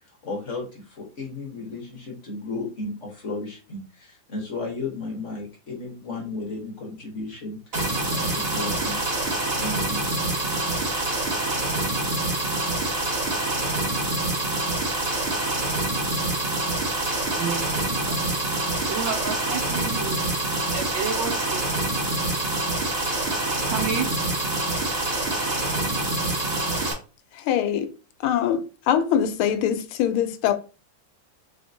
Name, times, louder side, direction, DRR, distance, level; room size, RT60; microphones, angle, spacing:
voice 1, 0.0-9.0 9.6-10.0, left 3 dB, 50° left, 0.9 m, -34 dB
sound 1, 7.7-26.9, right 2 dB, 40° right, 1.0 m, -26 dB
voice 2, 17.3-18.4 18.9-20.2 20.7-21.7 23.7-24.1, right 6 dB, 70° right, 1.2 m, -31 dB
voice 3, 27.5-27.9 28.2-28.6 28.9-30.5, left 9 dB, 80° left, 1.4 m, -22 dB
4.1 x 3.5 x 2.6 m
omnidirectional pair, 2.4 m